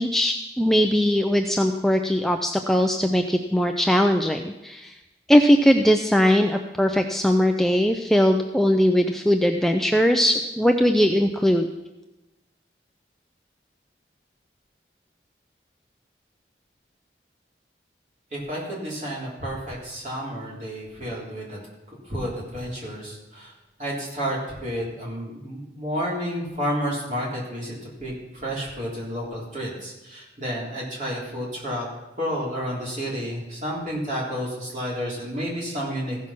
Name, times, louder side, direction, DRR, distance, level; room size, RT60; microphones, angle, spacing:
voice 1, 0.0-4.9 5.3-11.7, equal, ahead, 4 dB, 0.4 m, -20 dB
voice 2, 18.3-21.6 22.1-23.5 23.8-31.9 32.2-36.2, equal, 40° right, -5 dB, 3.7 m, -31 dB
15.0 x 6.1 x 5.8 m, 1.0 s
head